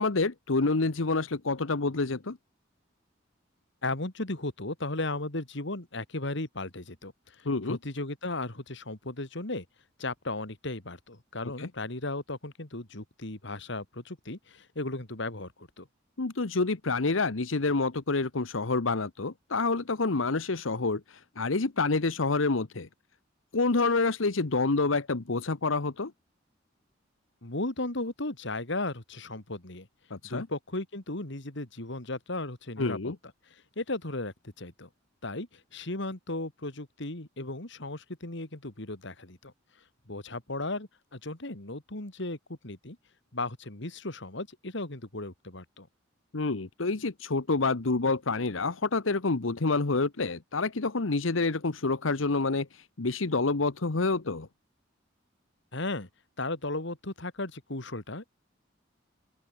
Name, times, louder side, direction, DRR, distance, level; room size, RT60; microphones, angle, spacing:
voice 1, 0.0-2.4 7.4-7.8 11.6-11.7 16.2-22.9 23.5-26.1 30.1-30.5 32.8-33.2 46.3-54.5, left 3 dB, 90° left, 1.1 m, -28 dB
voice 2, 3.8-9.6 10.0-15.9 27.4-29.9 30.2-33.1 33.5-34.9 35.2-39.5 40.1-43.0 43.3-45.9 55.7-56.1 56.4-58.3, left 2 dB, 65° left, 3.0 m, -36 dB
open air
head